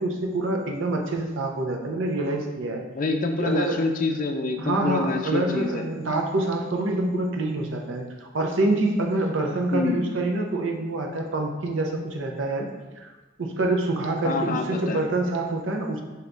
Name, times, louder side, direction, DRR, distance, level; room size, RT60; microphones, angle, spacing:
voice 1, 0.0-2.9 3.4-3.8 4.6-12.7 13.0-13.1 13.4-16.0, right 2 dB, 90° right, 2 dB, 0.6 m, -26 dB
voice 2, 3.0-5.8 9.7-10.0 14.2-15.0, left 3 dB, 45° left, 4 dB, 0.4 m, -26 dB
3.4 x 2.9 x 3.8 m, 1.2 s
head